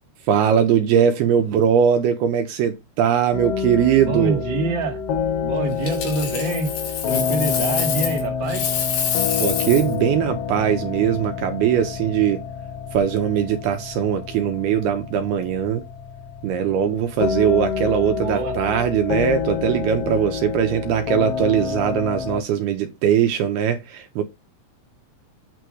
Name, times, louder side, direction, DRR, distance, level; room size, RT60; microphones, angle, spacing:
voice 1, 0.3-4.4 9.4-12.4 12.9-15.8 16.4-24.2, right 9 dB, 75° right, 2.8 m, -20 dB
sound 1, 3.3-22.4, left 6 dB, 65° left, 2.6 m, -28 dB
voice 2, 4.1-5.0 5.4-6.7 7.1-8.7 18.1-18.6, right 2 dB, 35° right, 2.1 m, -26 dB
Coin (dropping), 5.8-8.2 8.5-9.9 12.8-13.0, left 7 dB, 85° left, 4.7 m, -26 dB
9.3 x 3.3 x 6.3 m
omnidirectional pair, 4.9 m